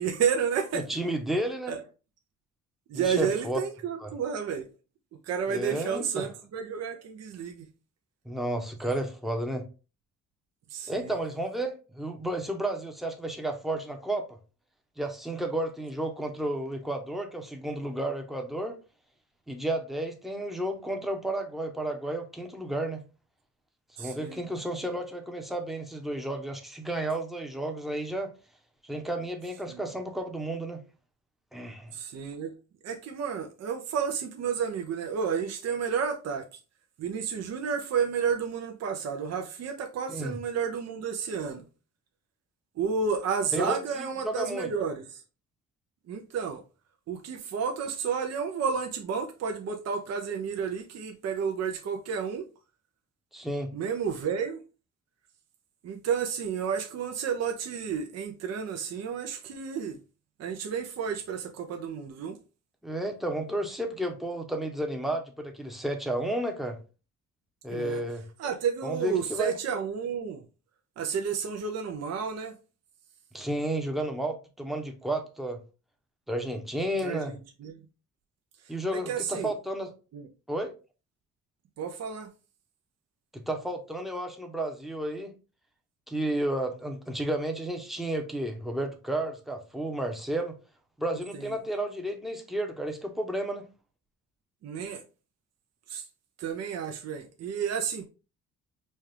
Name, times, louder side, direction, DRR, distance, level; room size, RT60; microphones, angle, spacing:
voice 1, 0.0-0.8 1.7-1.8 2.9-4.7 5.2-7.7 10.7-11.1 24.0-24.4 29.7-29.8 31.9-32.5 32.8-36.4 37.0-41.6 42.8-45.2 46.1-46.6 47.1-52.5 53.7-54.6 55.8-60.0 60.4-62.4 67.7-68.0 68.4-70.4 71.0-72.5 77.0-77.8 78.9-79.5 80.1-80.3 81.8-82.3 91.3-91.5 94.6-95.0 95.9-96.0 96.4-98.0, right 6 dB, 55° right, 0.7 m, -31 dB
voice 2, 0.7-1.7 2.9-3.6 4.0-4.1 5.5-6.3 8.2-9.7 10.9-14.4 15.0-18.8 19.5-23.0 24.0-28.3 28.8-30.8 31.5-31.9 40.1-40.4 43.5-44.7 53.3-53.7 62.8-66.8 67.6-68.3 68.8-69.6 73.3-75.6 76.3-77.3 78.7-79.9 80.5-80.7 83.3-85.3 86.1-90.5 91.0-93.7, right 1 dB, ahead, 0.8 m, -32 dB
4.2 x 2.4 x 3.3 m
cardioid pair, 90°, 30 cm